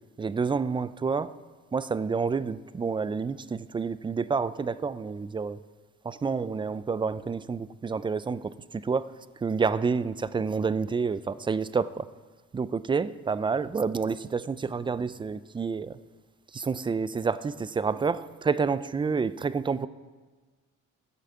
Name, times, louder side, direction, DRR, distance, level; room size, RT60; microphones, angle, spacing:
voice 1, 0.2-1.3 1.7-5.6 6.0-8.5 8.8-9.1 9.4-12.1 12.5-16.0 16.5-19.9, right 5 dB, 15° right, 16 dB, 0.3 m, -29 dB
12.0 x 5.5 x 7.7 m, 1.4 s
cardioid pair, 90°, 30 cm